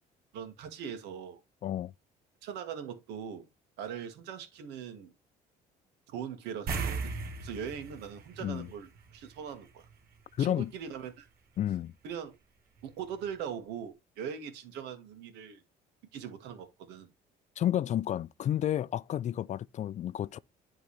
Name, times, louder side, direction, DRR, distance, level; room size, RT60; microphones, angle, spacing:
voice 1, 0.3-1.4 2.4-3.5 3.8-5.1 6.1-7.1 7.4-9.9 10.4-11.3 12.0-12.4 12.8-15.6 16.1-17.1, right 8 dB, 90° right, 1.9 m, -41 dB
voice 2, 1.6-1.9 8.4-8.7 10.4-10.7 11.6-11.9 17.6-20.4, left 11 dB, 45° left, 0.4 m, -31 dB
sound 1, 6.7-9.5 9.8-9.9 12.8-12.9 13.3-13.4, right 4 dB, 60° right, 1.7 m, -37 dB
11.5 x 3.9 x 3.2 m
cardioid pair, 110°, 17 cm